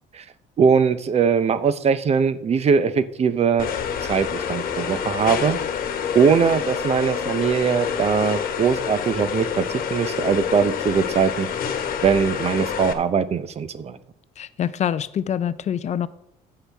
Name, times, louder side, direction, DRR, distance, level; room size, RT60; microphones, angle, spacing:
voice 1, 0.6-3.7 4.1-5.6 6.1-9.6 9.9-11.5 12.0-14.0, right 6 dB, 40° right, 13 dB, 0.6 m, -21 dB
sound 1, 3.6-12.9, left 7 dB, 60° left, 1.2 m, -27 dB
voice 2, 14.4-16.1, left 9 dB, 40° left, 15 dB, 0.4 m, -25 dB
14.5 x 5.8 x 3.5 m, 0.78 s
cardioid pair, 110°, 17 cm